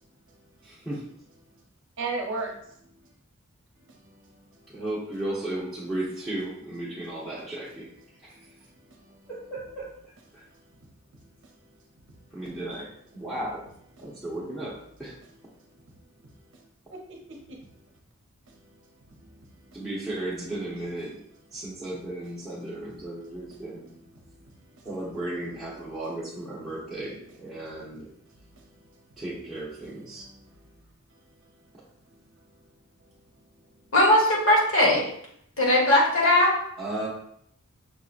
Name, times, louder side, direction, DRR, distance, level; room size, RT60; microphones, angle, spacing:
voice 1, 0.6-1.0 4.7-7.9 9.3-9.9 12.3-12.9 13.1-13.6 14.0-14.7 15.0-15.1 19.7-21.2 21.5-24.0 24.8-28.1 29.2-30.2 36.8-37.1, right 1 dB, ahead, 0.8 m, -34 dB
voice 2, 2.0-2.8 3.9-4.7 8.3-9.3 10.5-10.6 12.2-12.5 14.0-14.3 15.5-15.6 16.5-17.7 18.5-18.7 19.0-19.9 23.2-23.4 24.2-24.5 24.8-25.1 28.4-28.8 30.1-30.8 31.1-31.5 32.1-32.2 33.0-33.1, right 3 dB, 55° right, 0.7 m, -41 dB
voice 3, 33.9-35.0 35.6-36.5, left 1 dB, 60° left, 1.3 m, -19 dB
6.1 x 2.8 x 2.4 m
head